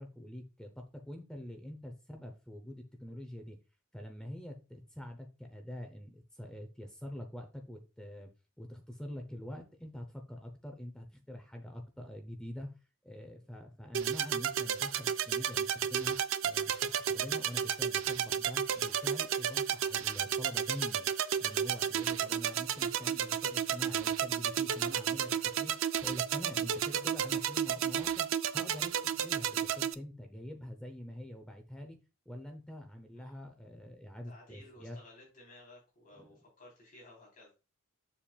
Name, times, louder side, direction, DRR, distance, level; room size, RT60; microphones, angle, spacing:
voice 1, 0.0-3.6 3.9-8.3 8.6-12.7 13.0-21.1 21.4-25.7 26.0-32.0 32.3-35.0 36.2-36.3, left 1 dB, 5° left, 4 dB, 0.7 m, -45 dB
sound 1, 13.9-29.9, right 8 dB, 60° right, 0.4 m, -32 dB
voice 2, 34.3-37.5, left 1 dB, 40° left, -2 dB, 3.6 m, -56 dB
7.2 x 7.2 x 2.4 m, 0.30 s
head